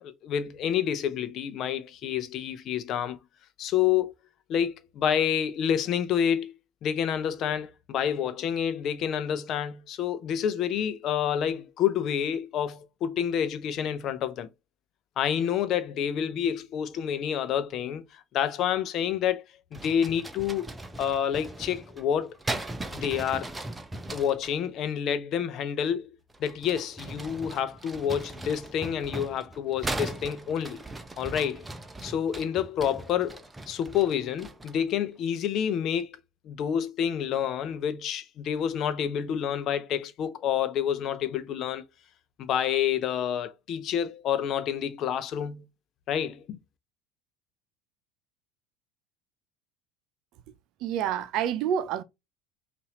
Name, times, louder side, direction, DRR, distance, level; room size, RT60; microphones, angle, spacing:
voice 1, 0.0-3.2 3.6-4.1 4.5-6.5 6.8-14.5 15.2-18.0 18.3-19.4 19.7-20.7 21.0-22.4 22.9-23.5 24.1-26.1 26.4-30.8 31.2-31.7 32.0-33.4 33.7-36.1 36.4-41.8 42.4-45.6 46.1-46.6, left 9 dB, 50° left, 0.6 m, -28 dB
sound 1, 19.7-24.6 26.3-34.9, right 2 dB, 10° right, 0.7 m, -39 dB
voice 2, 50.8-52.0, right 9 dB, 55° right, 0.6 m, -28 dB
5.5 x 2.6 x 3.0 m
hypercardioid pair, 70°, 0 cm